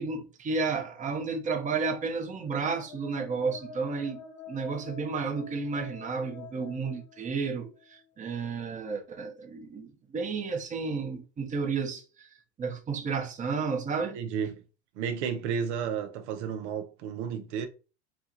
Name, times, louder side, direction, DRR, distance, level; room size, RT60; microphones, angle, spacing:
voice 1, 0.0-12.3 12.6-14.2, right 4 dB, 20° right, 1.0 m, -32 dB
sound 1, 2.2-8.0, left 7 dB, 50° left, 1.3 m, -48 dB
voice 2, 14.1-14.6 15.0-17.7, right 7 dB, 65° right, 0.9 m, -32 dB
4.6 x 2.4 x 4.0 m
supercardioid pair, 115°, 37 cm